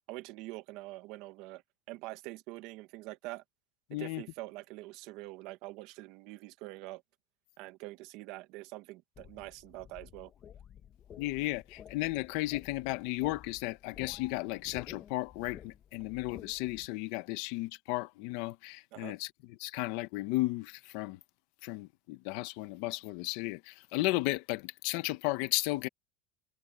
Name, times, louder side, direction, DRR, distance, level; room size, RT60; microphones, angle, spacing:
voice 1, 0.1-1.6 1.9-3.4 3.9-7.0 7.6-10.3 18.9-19.1, right 19 dB, 50° right, 1.4 m, -45 dB
voice 2, 3.9-4.2 11.2-19.3 19.6-21.2 21.6-25.9, left 20 dB, 55° left, 1.2 m, -34 dB
sound 1, 9.1-16.9, left 9 dB, 25° left, 1.4 m, -52 dB
supercardioid pair, 165°, 0 cm